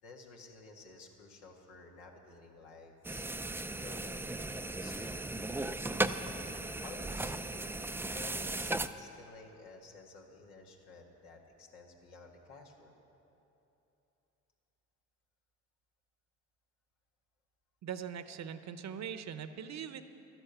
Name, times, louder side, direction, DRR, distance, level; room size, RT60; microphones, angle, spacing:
voice 1, 0.0-3.2 3.7-5.9 6.8-7.8 8.1-13.0, left 3 dB, 85° left, 1 dB, 1.6 m, -53 dB
sound 1, 3.0-8.9, right 2 dB, 5° right, 0.4 m, -36 dB
voice 2, 17.8-20.0, right 8 dB, 50° right, 11 dB, 0.8 m, -41 dB
12.5 x 11.0 x 6.8 m, 2.9 s
supercardioid pair, 70°, 36 cm